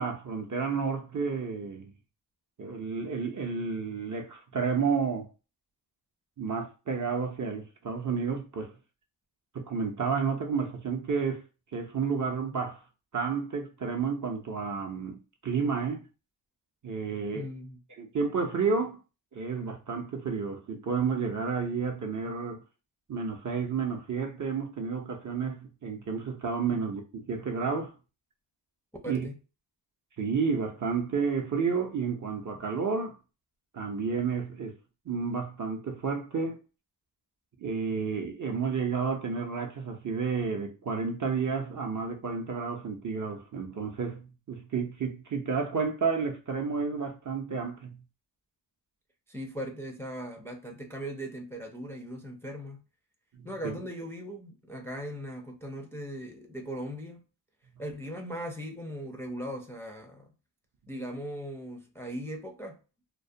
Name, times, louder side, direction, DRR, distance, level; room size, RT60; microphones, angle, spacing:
voice 1, 0.0-1.9 2.6-5.3 6.4-8.7 9.5-11.4 11.7-12.8 13.1-16.0 16.8-17.5 18.0-19.0 19.3-22.6 23.1-27.9 29.1-29.3 30.2-33.2 33.7-34.7 35.1-36.6 37.6-48.0 53.4-53.8, right 5 dB, 40° right, 0.6 m, -31 dB
voice 2, 17.3-17.8 26.7-26.8 29.0-29.3 49.3-52.8 53.4-57.2 57.8-60.3 60.9-62.8, equal, 5° left, 0.4 m, -39 dB
2.2 x 2.1 x 2.6 m
cardioid pair, 55°, 46 cm